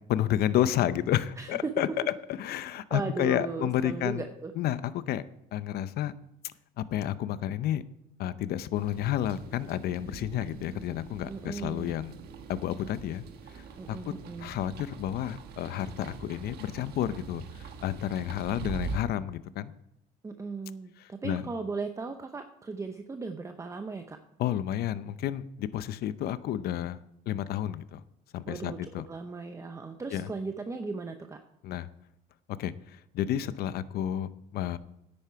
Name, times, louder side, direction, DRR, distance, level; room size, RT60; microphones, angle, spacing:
voice 1, 0.1-1.9 2.4-4.2 4.6-5.2 5.5-6.1 6.8-7.8 8.2-12.1 12.5-13.2 13.6-14.1 14.4-19.7 21.0-21.4 24.4-27.0 27.3-28.0 28.3-29.1 30.1-30.3 31.6-31.9 32.6-34.8, left 11 dB, 70° left, 15 dB, 0.6 m, -31 dB
voice 2, 1.4-1.9 2.6-4.5 11.3-12.0 13.8-14.6 20.2-24.2 28.5-31.4, right 4 dB, 20° right, 7 dB, 0.7 m, -37 dB
sound 1, 8.7-19.0, right 5 dB, 70° right, 1.3 m, -43 dB
10.0 x 8.6 x 4.7 m, 0.82 s
cardioid pair, 110°, 17 cm